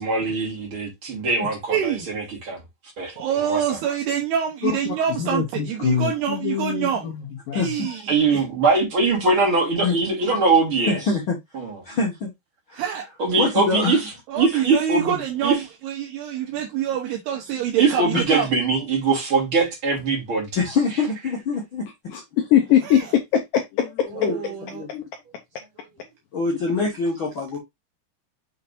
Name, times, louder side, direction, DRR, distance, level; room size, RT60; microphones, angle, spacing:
voice 1, 0.0-2.6 3.0-3.1 3.4-3.6 8.1-11.0 11.5-11.8 13.2-14.0 14.4-15.6 17.8-20.5, right 4 dB, 35° right, 2.9 m, -22 dB
voice 2, 1.7-2.1 3.2-7.1 7.5-8.4 12.7-13.1 14.3-18.5 22.8-23.1 24.1-24.8, right 9 dB, 75° right, 2.9 m, -26 dB
voice 3, 5.2-6.9 7.5-7.6 22.1-24.5 24.9-25.0, left 9 dB, 85° left, 1.9 m, -22 dB
voice 4, 7.5-8.0 9.8-10.0 10.3-10.4 10.9-11.3 11.8-12.3 12.7-12.8 13.3-14.0 14.5-14.6 20.5-21.8 24.1-24.4 24.7-24.9 26.3-27.6, left 4 dB, 65° left, 1.2 m, -24 dB
6.7 x 5.8 x 2.6 m
omnidirectional pair, 5.0 m